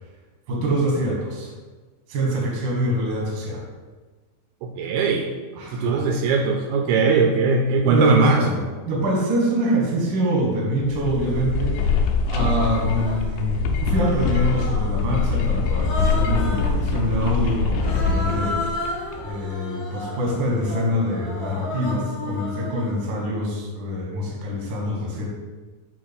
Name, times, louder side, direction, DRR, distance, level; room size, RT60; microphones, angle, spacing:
voice 1, 0.5-1.5 2.1-3.6 5.6-6.0 7.9-18.5 19.2-25.2, equal, 55° right, -3 dB, 1.3 m, -25 dB
voice 2, 4.6-5.3 5.7-8.5, right 4 dB, 80° right, 3 dB, 2.1 m, -20 dB
sound 1, 10.8-19.4, left 4 dB, 85° left, 2.4 m, -23 dB
Human voice, 11.3-11.4 12.4-13.3 13.9-15.0 15.7-16.8 17.7-23.0, left 2 dB, 45° left, 1.2 m, -33 dB
7.2 x 2.6 x 5.3 m, 1.3 s
omnidirectional pair, 4.2 m